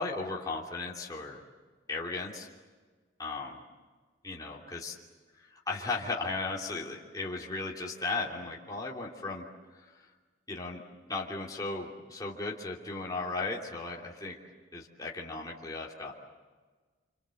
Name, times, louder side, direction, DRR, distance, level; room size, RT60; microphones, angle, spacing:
voice 1, 0.0-1.4 1.9-2.5 3.2-3.6 4.2-4.9 5.3-9.4 9.7-10.1 10.5-10.8 11.1-14.4 14.7-16.1, left 3 dB, 20° left, -3 dB, 3.0 m, -36 dB
27.5 x 27.5 x 7.9 m, 1.4 s
head